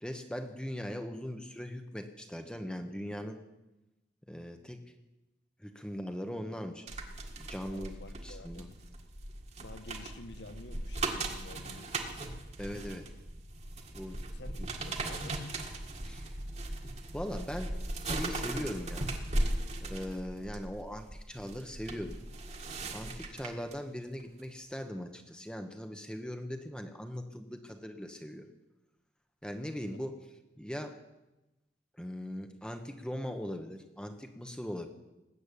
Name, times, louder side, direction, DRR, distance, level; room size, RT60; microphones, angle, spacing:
voice 1, 0.0-3.4 4.3-4.8 5.6-6.9 7.4-7.9 8.2-8.7 12.6-13.1 13.9-14.2 14.6-14.7 16.0-16.2 17.1-19.1 19.8-22.2 22.9-28.5 29.4-30.1 30.6-31.0 32.0-34.9, equal, 5° left, 6 dB, 1.0 m, -40 dB
sound 1, 6.9-23.7 24.2-24.4, right 2 dB, 40° right, 1.7 m, -38 dB
voice 2, 7.7-8.8 9.6-12.2 14.3-14.6 14.8-15.4, left 2 dB, 80° left, 10 dB, 1.2 m, -50 dB
19.5 x 8.6 x 8.4 m, 1.0 s
head